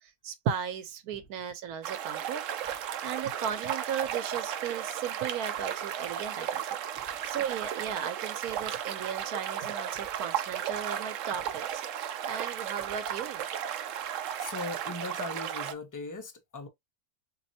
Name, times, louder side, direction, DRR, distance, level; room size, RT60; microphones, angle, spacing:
voice 1, 0.0-2.4 2.8-6.6 7.2-13.4, right 8 dB, 85° right, 1.2 m, -36 dB
sound 1, 1.8-15.7, right 10 dB, 70° right, 0.9 m, -35 dB
voice 2, 14.0-16.7, left 2 dB, 20° left, 0.6 m, -40 dB
4.2 x 2.9 x 2.7 m
omnidirectional pair, 1.5 m